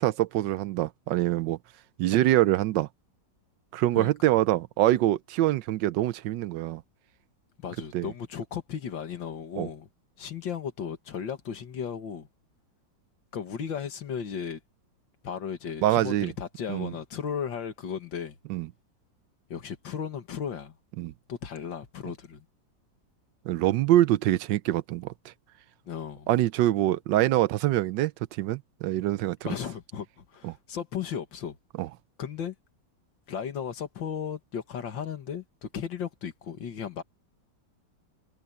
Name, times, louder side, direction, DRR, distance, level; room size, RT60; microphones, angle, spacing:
voice 1, 0.0-1.6 2.0-2.9 3.7-6.8 7.9-8.1 9.6-9.7 15.8-16.3 16.7-16.9 18.5-18.7 21.0-21.1 23.5-25.1 26.3-29.4 30.4-30.5 31.8-31.9, right 14 dB, 75° right, 1.3 m, -24 dB
voice 2, 7.6-9.9 10.2-12.3 13.3-14.6 15.2-18.4 19.5-20.7 21.3-22.5 25.9-26.3 29.4-31.6 32.2-32.6 33.3-37.0, left 7 dB, 80° left, 2.3 m, -35 dB
omnidirectional pair, 2.0 m